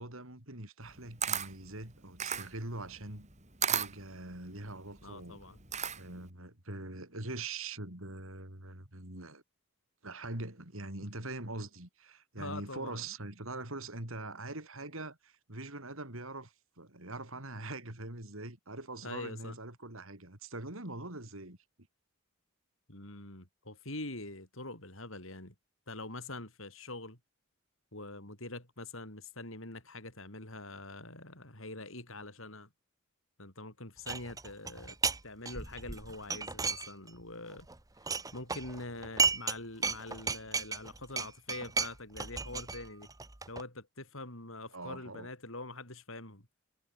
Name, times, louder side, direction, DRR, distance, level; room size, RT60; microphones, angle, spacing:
voice 1, 0.0-3.3 3.7-5.4 5.9-9.4 10.0-21.6 44.7-45.3, right 2 dB, 70° right, 4.9 m, -43 dB
Camera, 0.8-6.3, right 8 dB, 35° right, 4.2 m, -36 dB
voice 2, 5.0-5.6 12.4-13.0 19.0-19.5 22.9-25.5 25.9-27.2 27.9-32.7 33.4-35.0 35.2-37.7 38.3-43.1 43.5-46.5, left 2 dB, 65° left, 7.9 m, -44 dB
sound 1, 34.1-35.2 35.4-37.2 37.5-39.6 39.8-43.6, right 4 dB, 15° right, 1.0 m, -34 dB
head